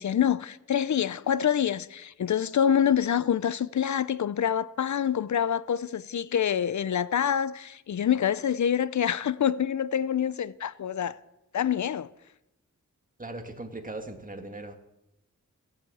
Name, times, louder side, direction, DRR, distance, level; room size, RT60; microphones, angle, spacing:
voice 1, 0.0-11.1 11.5-12.1, left 9 dB, 65° left, 0.6 m, -26 dB
voice 2, 13.2-14.8, right 2 dB, 25° right, 2.1 m, -39 dB
15.5 x 8.1 x 8.6 m
cardioid pair, 70°, 31 cm